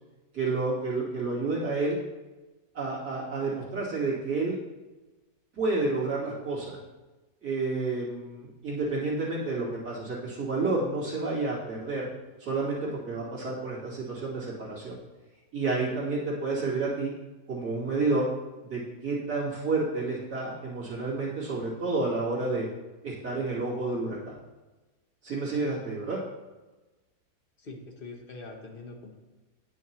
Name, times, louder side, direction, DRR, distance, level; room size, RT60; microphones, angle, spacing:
voice 1, 0.3-2.0 2.7-4.6 5.5-6.8 7.4-12.1 12.4-15.0 15.5-17.1 17.5-18.3 18.7-22.7 23.0-24.4 25.2-26.2, right 3 dB, 85° right, -8 dB, 3.0 m, -30 dB
voice 2, 27.6-29.2, left 3 dB, 45° left, 1 dB, 0.9 m, -43 dB
9.5 x 6.3 x 3.0 m, 1.2 s
omnidirectional pair, 1.6 m